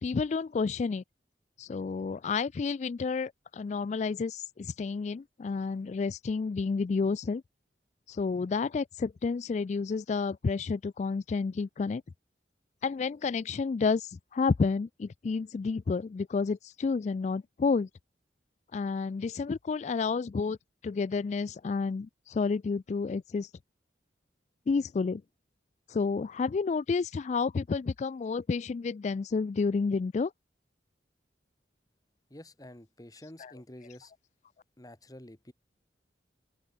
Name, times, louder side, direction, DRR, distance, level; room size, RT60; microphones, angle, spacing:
voice 1, 0.0-1.0 1.6-7.4 8.1-12.0 12.8-17.9 18.7-20.6 20.8-23.5 24.7-25.2 25.9-30.3 33.4-33.5, left 4 dB, 40° left, 0.3 m, -30 dB
voice 2, 32.3-34.1 34.8-35.5, left 1 dB, 20° left, 1.5 m, -49 dB
open air
head